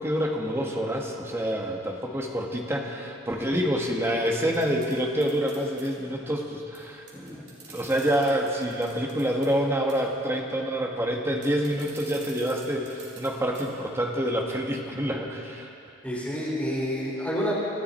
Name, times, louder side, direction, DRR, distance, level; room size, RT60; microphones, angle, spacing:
voice 1, 0.0-7.4 7.7-15.7, equal, 15° right, 0 dB, 1.5 m, -27 dB
sound 1, 4.3-5.9 6.7-6.8 7.0-9.5 9.9-10.1 11.4-13.3 13.5-13.6 14.1-14.2, right 5 dB, 60° right, 3.7 m, -47 dB
voice 2, 16.0-17.5, equal, 5° left, -8 dB, 5.1 m, -29 dB
26.5 x 12.5 x 4.4 m, 2.9 s
head